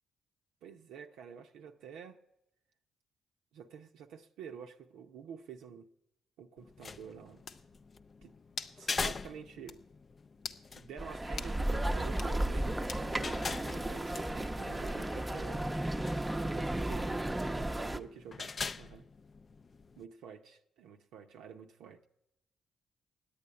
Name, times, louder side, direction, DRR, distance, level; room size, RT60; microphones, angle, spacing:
voice 1, 0.6-2.2 3.5-5.9 6.4-7.4 8.2-8.3 8.8-9.8 10.8-15.7 16.4-19.1 20.0-22.1, right 7 dB, 75° right, 0.7 m, -49 dB
sound 1, 6.6-20.0, left 4 dB, 45° left, 0.4 m, -44 dB
sound 2, 7.5-7.7 8.6-8.8 9.2-9.3 9.7-9.8 10.4-10.7 11.4-11.6 12.1-12.4 12.9-13.1 14.1-14.5, left 5 dB, 65° left, 0.8 m, -43 dB
sound 3, 11.0-18.0, right 1 dB, 15° right, 0.7 m, -34 dB
10.0 x 8.7 x 9.6 m
hypercardioid pair, 45°, 0 cm